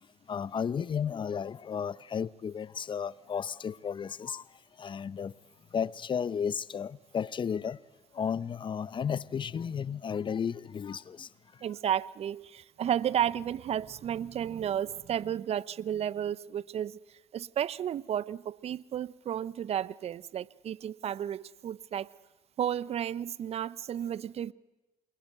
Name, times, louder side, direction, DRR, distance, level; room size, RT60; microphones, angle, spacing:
voice 1, 0.3-4.4 4.8-5.3 5.7-7.8 8.1-11.3, left 7 dB, 35° left, 0.8 m, -33 dB
voice 2, 11.6-17.0 17.3-22.1 22.6-24.5, right 10 dB, 45° right, 0.8 m, -32 dB
28.0 x 22.5 x 8.0 m
hypercardioid pair, 65°, 14 cm